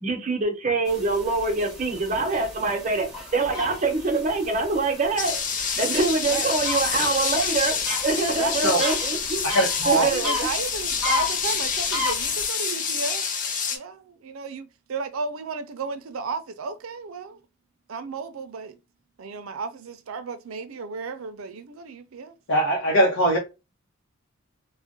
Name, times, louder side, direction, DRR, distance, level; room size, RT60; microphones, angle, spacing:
voice 1, 0.0-5.4 5.8-7.8 8.0-9.4 9.9-10.5, right 3 dB, 35° right, 0.8 m, -25 dB
sound 1, 0.9-12.5, left 3 dB, 5° right, 0.9 m, -34 dB
sound 2, 5.2-13.8, left 6 dB, 40° left, 0.5 m, -27 dB
voice 2, 8.3-8.6 9.9-13.3 13.7-17.4 17.9-18.8 19.2-22.4, right 4 dB, 85° right, 0.5 m, -33 dB
voice 3, 9.4-10.1 22.5-23.4, right 1 dB, 70° left, 0.8 m, -21 dB
2.4 x 2.1 x 3.6 m
head